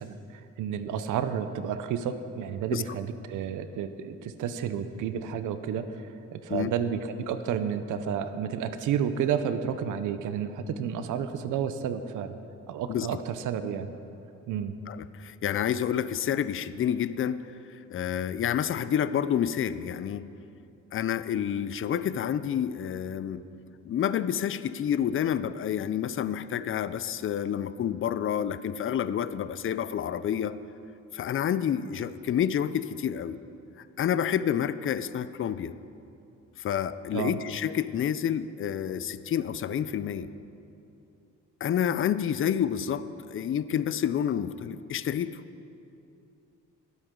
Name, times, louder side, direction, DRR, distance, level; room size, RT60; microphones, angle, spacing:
voice 1, 0.0-12.4 12.7-13.9 14.5-14.8 37.1-37.4, right 8 dB, 80° right, 10 dB, 0.7 m, -31 dB
voice 2, 12.9-13.2 14.9-17.4 17.7-20.3 20.9-23.4 23.8-30.6 31.1-33.4 33.8-35.7 36.6-40.3 41.6-45.4, left 9 dB, 45° left, 14 dB, 0.5 m, -29 dB
20.5 x 8.1 x 3.8 m, 2.7 s
cardioid pair, 90°, 30 cm